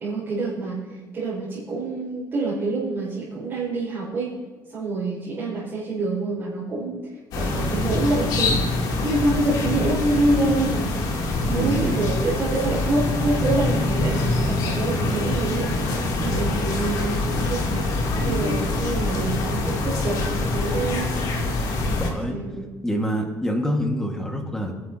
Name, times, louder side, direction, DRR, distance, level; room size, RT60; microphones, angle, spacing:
voice 1, 0.0-4.3 4.7-7.0 7.3-8.6 9.0-10.9 11.5-15.7 16.2-21.2 22.1-22.7, right 2 dB, 30° right, -8 dB, 5.4 m, -26 dB
sound 1, 7.3-22.1, left 2 dB, 70° left, 3.0 m, -24 dB
voice 2, 11.5-12.0 21.9-22.4 22.8-24.7, equal, 5° left, 1 dB, 1.8 m, -26 dB
24.5 x 11.5 x 2.9 m, 1.3 s
cardioid pair, 175°, 7 cm